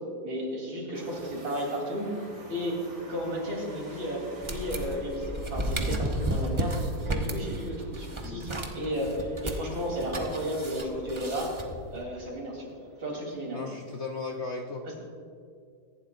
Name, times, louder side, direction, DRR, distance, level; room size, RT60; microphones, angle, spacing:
voice 1, 0.2-2.2 2.5-2.8 3.1-6.8 7.1-11.5 11.9-12.7 13.0-13.6, equal, 90° right, -2 dB, 4.3 m, -33 dB
sound 1, 0.9-14.4, right 1 dB, 55° right, 3.3 m, -52 dB
sound 2, 4.4-12.0, right 1 dB, 25° right, 0.7 m, -33 dB
voice 2, 13.5-14.9, left 3 dB, 50° left, 1 dB, 0.8 m, -35 dB
24.0 x 11.5 x 2.6 m, 2.3 s
omnidirectional pair, 2.1 m